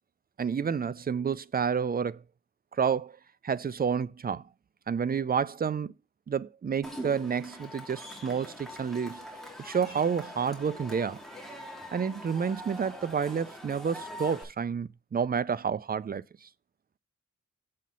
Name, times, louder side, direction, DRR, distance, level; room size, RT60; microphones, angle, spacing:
voice 1, 0.4-2.2 2.8-3.2 3.4-4.4 4.9-5.9 6.3-9.3 9.6-11.2 11.9-16.5, right 6 dB, 30° right, 0.4 m, -30 dB
Cheering / Crowd, 6.8-14.4, equal, ahead, 2.4 m, -43 dB
7.3 x 4.3 x 5.3 m
wide cardioid pair, 85°, 30 cm